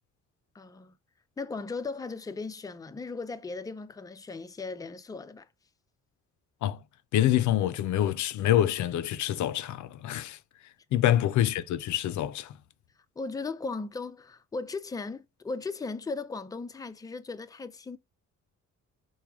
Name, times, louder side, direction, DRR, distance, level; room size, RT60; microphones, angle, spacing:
voice 1, 0.5-0.9 1.4-5.5 13.2-18.0, left 3 dB, 10° left, 0.4 m, -37 dB
voice 2, 7.1-10.4 10.9-12.5, left 12 dB, 70° left, 0.5 m, -26 dB
4.7 x 2.3 x 3.4 m
cardioid pair, 90°, 30 cm